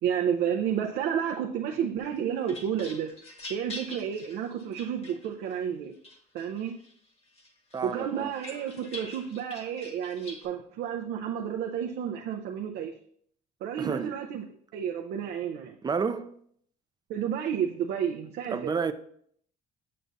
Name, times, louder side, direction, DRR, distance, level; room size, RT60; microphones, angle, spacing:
voice 1, 0.0-3.1 3.5-6.0 6.3-6.7 7.8-12.9 13.6-14.4 14.7-15.8 17.1-18.7, right 8 dB, 75° right, 0.6 m, -31 dB
sound 1, 2.0-5.6 6.0-6.9 7.4-10.5, left 2 dB, 35° left, 1.2 m, -45 dB
voice 2, 7.7-8.3 13.8-14.1 15.8-16.3 18.5-18.9, right 5 dB, 25° right, 0.4 m, -30 dB
7.6 x 6.8 x 2.6 m
cardioid pair, 110°, 17 cm